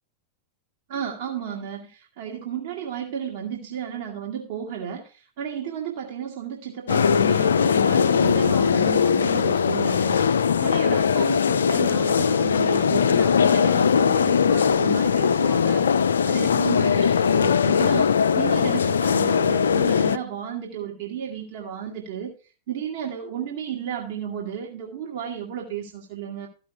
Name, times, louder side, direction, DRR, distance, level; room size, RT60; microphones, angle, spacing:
voice 1, 0.9-22.3 22.7-26.5, right 8 dB, 50° right, 0 dB, 1.6 m, -33 dB
sound 1, 6.9-20.2, left 7 dB, 70° left, 0.4 m, -20 dB
13.5 x 5.6 x 4.7 m, 0.36 s
figure-of-eight pair, 90°, 0 cm